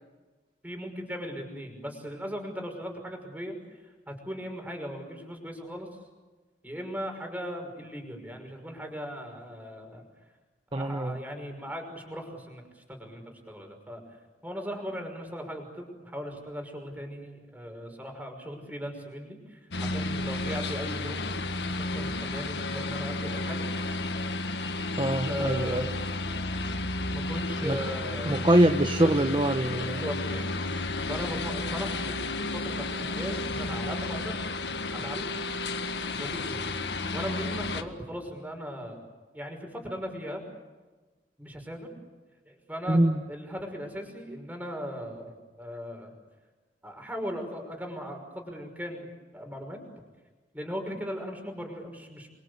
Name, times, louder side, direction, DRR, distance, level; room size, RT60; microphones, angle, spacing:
voice 1, 0.6-3.6 3.8-5.9 6.6-10.0 10.7-14.0 14.4-21.2 21.5-23.7 25.3-25.9 27.1-28.5 29.1-29.3 29.8-30.5 31.1-34.4 34.9-35.4 36.2-36.8 37.1-39.0 39.3-40.4 41.4-41.9 42.5-43.0 43.3-46.1 46.8-49.8 50.5-52.3, equal, 10° right, 3 dB, 5.8 m, -38 dB
voice 2, 10.7-11.1 25.0-25.8 27.6-27.8 28.3-30.0 42.9-43.2, right 1 dB, 30° right, 7 dB, 1.0 m, -24 dB
sound 1, 19.7-37.8, left 2 dB, 80° left, 1.7 m, -32 dB
28.5 x 24.0 x 8.3 m, 1.3 s
head